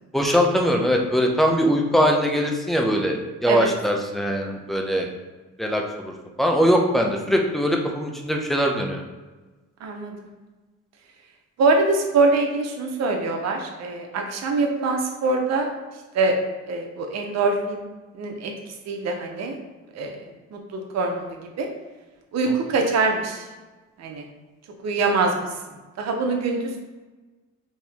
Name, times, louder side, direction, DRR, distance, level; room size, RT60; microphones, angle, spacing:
voice 1, 0.1-5.1 5.6-9.0 22.5-22.7, equal, ahead, 2 dB, 0.6 m, -22 dB
voice 2, 9.8-10.3 11.6-15.7 16.1-16.3 16.7-17.9 18.1-18.5 18.9-19.6 19.9-20.2 20.5-21.7 22.3-23.4 24.0-24.2 24.8-25.4 26.0-26.8, right 3 dB, 60° right, 2 dB, 0.7 m, -23 dB
4.4 x 2.8 x 3.5 m, 1.2 s
cardioid pair, 90°, 30 cm